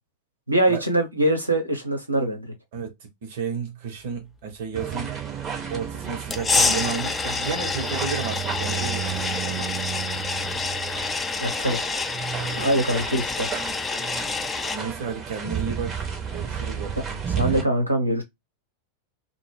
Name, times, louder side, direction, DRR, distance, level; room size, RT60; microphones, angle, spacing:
voice 1, 0.5-2.5 11.4-11.8 12.6-13.5 17.4-18.2, right 1 dB, 85° right, 0.7 m, -23 dB
voice 2, 2.7-5.2 5.7-9.7 12.3-12.7 14.7-16.0 16.3-17.2, right 5 dB, 55° right, 0.9 m, -32 dB
sound 1, 4.7-17.6, right 8 dB, 25° right, 0.8 m, -32 dB
sound 2, 6.3-14.8, left 4 dB, 15° left, 0.3 m, -27 dB
2.1 x 2.1 x 3.2 m
figure-of-eight pair, 90°, 0 cm